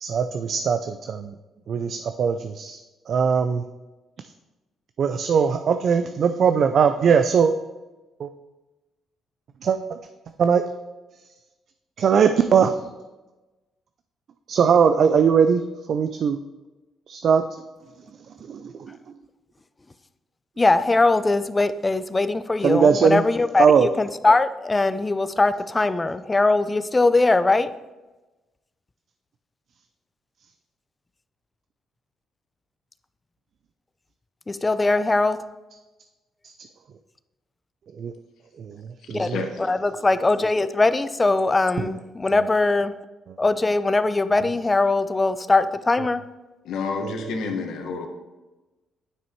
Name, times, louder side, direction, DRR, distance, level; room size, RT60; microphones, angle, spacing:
voice 1, 0.0-0.8 1.1-1.3 1.7-2.8 3.1-3.6 5.0-7.5 8.2-8.3 9.6-9.8 10.4-10.6 12.0-12.7 14.5-15.6 15.9-16.4 17.1-17.4 18.5-18.6 22.6-23.2 23.6-23.9 38.0-38.1, right 6 dB, 60° right, 0.5 m, -19 dB
voice 2, 20.6-27.7 34.5-35.4 39.2-39.3 39.6-42.9 43.4-46.2, left 3 dB, 20° left, 0.5 m, -21 dB
voice 3, 46.6-48.1, left 4 dB, 75° left, 1.4 m, -29 dB
9.7 x 6.2 x 4.6 m
cardioid pair, 90°, 0 cm